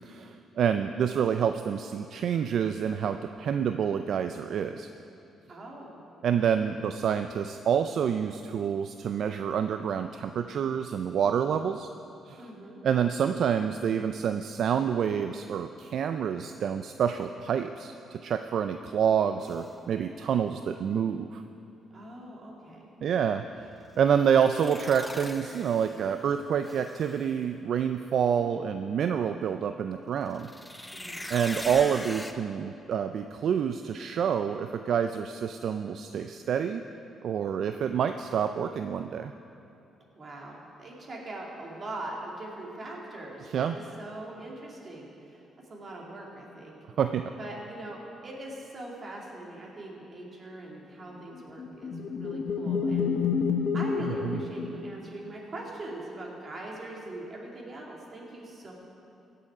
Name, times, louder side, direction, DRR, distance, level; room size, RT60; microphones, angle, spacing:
voice 1, 0.1-4.9 6.2-11.9 12.3-12.4 12.8-21.4 23.0-23.4 24.0-30.5 31.3-36.8 37.2-39.3 43.5-43.8 47.0-47.3 54.2-54.4, right 8 dB, 65° right, 8 dB, 0.3 m, -28 dB
voice 2, 5.5-6.0 12.4-12.8 21.9-22.9 30.9-31.3 40.1-46.8 47.4-53.1 53.7-58.7, right 2 dB, 40° right, -2 dB, 2.5 m, -41 dB
sound 1, 19.4-19.7 24.1-26.2 26.6-27.3 30.3-32.3, left 1 dB, 10° left, 0.6 m, -41 dB
sound 2, 51.3-55.3, left 5 dB, 55° left, 0.9 m, -29 dB
17.0 x 6.8 x 4.8 m, 2.8 s
cardioid pair, 90°, 0 cm